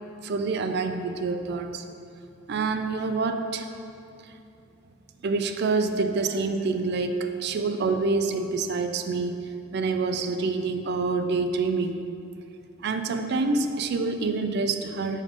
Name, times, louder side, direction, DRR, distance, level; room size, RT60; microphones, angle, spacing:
voice 1, 0.2-1.8 2.5-3.7 5.2-9.4 9.7-12.1 12.8-15.2, right 3 dB, 55° right, 8 dB, 0.4 m, -27 dB
5.3 x 5.1 x 5.2 m, 2.6 s
head